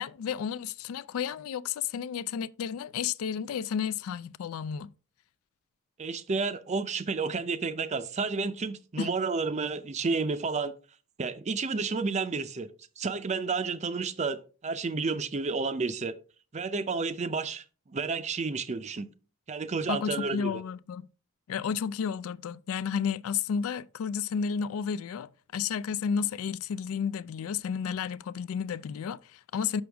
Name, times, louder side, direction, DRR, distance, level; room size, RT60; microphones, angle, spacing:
voice 1, 0.0-4.9 9.0-9.1 19.9-21.1 21.5-29.8, left 7 dB, 70° left, 0.3 m, -32 dB
voice 2, 6.0-10.7 11.2-12.7 13.0-16.1 16.5-19.1 19.5-20.6, right 4 dB, 30° right, 0.5 m, -31 dB
6.3 x 6.1 x 3.4 m
head